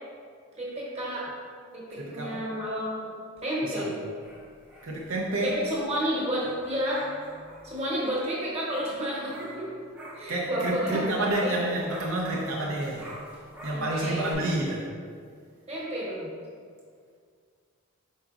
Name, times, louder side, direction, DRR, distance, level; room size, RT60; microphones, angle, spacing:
voice 1, 0.5-1.3 1.7-3.1 3.4-3.9 5.4-7.1 7.6-9.7 10.1-11.7 13.7-14.3 15.7-16.3, equal, 30° right, -6 dB, 1.0 m, -31 dB
voice 2, 1.9-2.5 3.6-4.0 4.8-5.6 10.3-13.1 13.6-14.9, right 1 dB, 70° right, -3 dB, 0.5 m, -29 dB
sound 1, 4.0-11.0 11.2-14.3, right 1 dB, 5° right, 0.5 m, -46 dB
4.8 x 3.9 x 2.4 m, 2.1 s
head